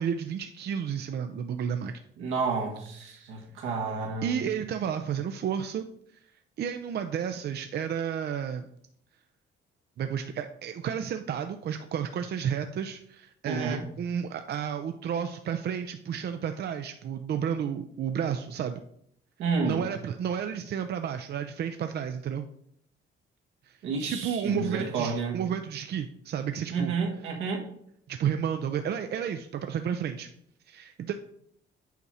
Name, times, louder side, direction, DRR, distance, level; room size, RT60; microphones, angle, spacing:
voice 1, 0.0-1.9 3.1-3.2 4.2-5.9 6.6-8.7 10.0-18.8 19.6-22.5 23.7-26.9 28.1-30.3 30.7-31.1, right 8 dB, 55° right, 7 dB, 0.5 m, -32 dB
voice 2, 2.2-4.4 13.5-13.8 19.4-19.8 23.8-25.4 26.7-27.7, right 4 dB, 85° right, 1 dB, 1.5 m, -30 dB
8.2 x 4.7 x 4.2 m, 0.70 s
cardioid pair, 90°, 20 cm